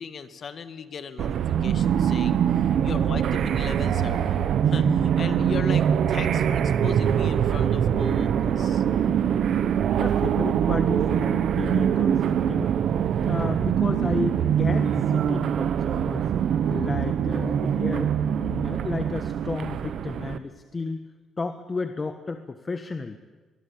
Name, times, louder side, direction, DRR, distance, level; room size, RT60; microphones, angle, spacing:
voice 1, 0.0-8.8 13.3-13.5, left 6 dB, 50° left, 10 dB, 1.8 m, -38 dB
sound 1, 1.2-20.4, right 8 dB, 70° right, 1.2 m, -23 dB
voice 2, 10.0-12.7 13.2-16.3 16.7-18.1 18.4-21.1 21.4-23.2, left 3 dB, 30° left, 8 dB, 1.4 m, -32 dB
23.0 x 20.5 x 8.8 m, 1.4 s
cardioid pair, 90°, 0 cm